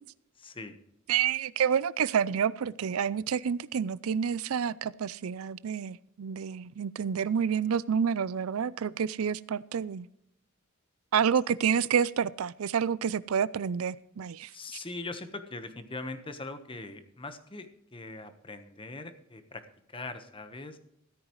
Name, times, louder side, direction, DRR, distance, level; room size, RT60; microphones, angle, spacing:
voice 1, 0.4-0.7 14.5-19.6 19.9-20.8, left 2 dB, 25° left, 9 dB, 1.2 m, -41 dB
voice 2, 1.1-10.1 11.1-14.8, right 7 dB, 85° right, 20 dB, 0.4 m, -29 dB
14.0 x 13.0 x 3.1 m, 0.75 s
head